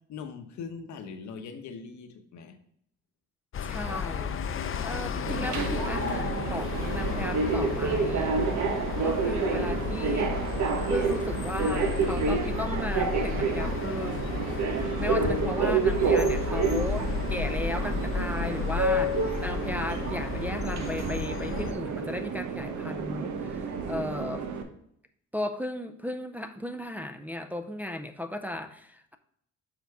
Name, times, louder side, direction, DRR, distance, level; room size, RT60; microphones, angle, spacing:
voice 1, 0.1-2.6, left 5 dB, 70° left, 7 dB, 1.0 m, -41 dB
sound 1, 3.5-21.7, left 7 dB, 45° left, 0.6 m, -33 dB
voice 2, 3.6-4.4 4.8-8.4 9.0-10.4 10.9-14.3 15.0-24.5 25.3-29.2, left 1 dB, 5° right, 5 dB, 0.5 m, -36 dB
Subway metro underground, 5.3-24.6, right 4 dB, 70° right, 0.9 m, -29 dB
6.7 x 4.0 x 4.7 m, 0.69 s
cardioid pair, 90°, 30 cm